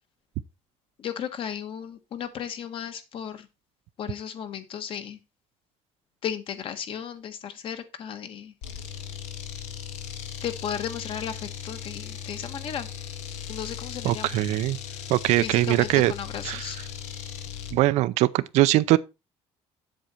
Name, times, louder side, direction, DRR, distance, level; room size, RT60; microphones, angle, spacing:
voice 1, 1.0-3.5 4.0-5.2 6.2-8.5 10.4-12.9 13.5-14.4 14.9-15.0 15.4-16.8, left 8 dB, 50° left, 1.4 m, -35 dB
sound 1, 8.6-17.8, left 8 dB, 90° left, 1.5 m, -38 dB
voice 2, 14.0-14.8 15.1-16.1 16.4-16.7 17.7-19.0, right 17 dB, 85° right, 0.6 m, -21 dB
8.1 x 7.7 x 4.4 m
cardioid pair, 140°, 11 cm